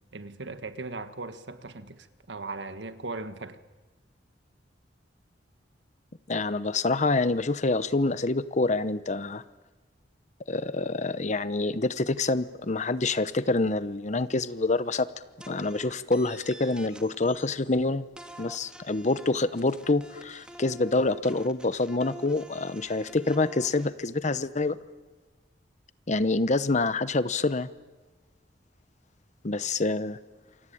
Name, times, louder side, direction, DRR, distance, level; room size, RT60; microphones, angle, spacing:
voice 1, 0.1-3.6, right 3 dB, 75° right, 1.6 m, -38 dB
voice 2, 6.3-9.4 10.5-15.1 15.5-18.1 18.4-24.8 26.1-27.7 29.4-30.2, left 3 dB, 40° left, 0.9 m, -26 dB
sound 1, 15.4-17.8 18.2-23.9, right 1 dB, 5° right, 1.8 m, -47 dB
27.5 x 23.5 x 8.7 m
head